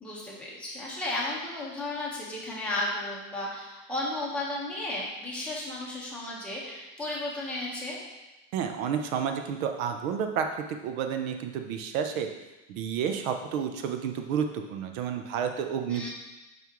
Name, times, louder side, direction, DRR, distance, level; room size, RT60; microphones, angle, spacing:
voice 1, 0.0-8.0 15.9-16.1, left 2 dB, 5° left, -6 dB, 1.3 m, -34 dB
voice 2, 8.5-12.3 12.7-16.1, right 7 dB, 80° right, 6 dB, 0.8 m, -30 dB
5.7 x 5.5 x 3.1 m, 1.0 s
supercardioid pair, 150°, 41 cm